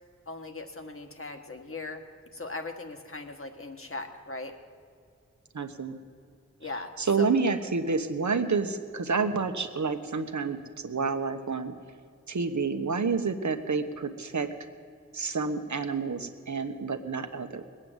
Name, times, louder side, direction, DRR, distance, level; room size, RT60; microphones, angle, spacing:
voice 1, 0.3-2.0 2.3-4.5 6.6-6.9 7.2-7.3, left 3 dB, 45° left, 5 dB, 1.5 m, -39 dB
voice 2, 5.5-6.0 7.0-11.7 12.3-14.5 15.1-17.6, right 4 dB, 75° right, 7 dB, 1.1 m, -29 dB
20.0 x 8.7 x 8.0 m, 2.3 s
wide cardioid pair, 65°, 29 cm